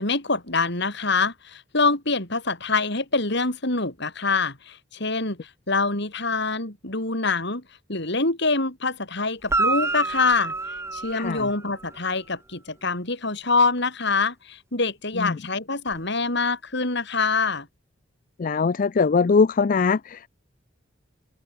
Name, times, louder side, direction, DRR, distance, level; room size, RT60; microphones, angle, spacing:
voice 1, 0.0-7.6 7.9-10.5 10.9-17.7, left 3 dB, 60° left, 5.6 m, -25 dB
Guitar, 9.4-12.0 15.9-16.0, right 3 dB, 15° right, 0.8 m, -28 dB
voice 2, 11.1-11.5 15.2-15.4 18.4-20.3, left 5 dB, 45° left, 0.4 m, -21 dB
head